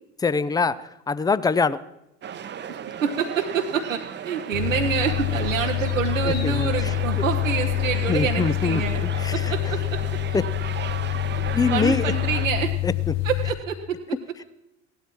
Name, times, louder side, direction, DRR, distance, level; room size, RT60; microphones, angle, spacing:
voice 1, 0.2-0.8 1.1-1.8 6.3-7.2 8.1-9.5 10.3-10.4 11.5-12.1 12.8-13.1, left 4 dB, 10° left, 17 dB, 0.6 m, -24 dB
sound 1, 2.2-12.5, right 8 dB, 30° right, 0.9 m, -35 dB
voice 2, 3.0-9.0 9.3-9.8 11.3-11.4 11.7-12.7 13.2-13.8, right 7 dB, 85° right, 0 dB, 0.9 m, -27 dB
sound 2, 4.5-13.5, left 16 dB, 45° left, 1.4 m, -26 dB
17.0 x 12.5 x 4.5 m, 0.87 s
figure-of-eight pair, 60°, 38 cm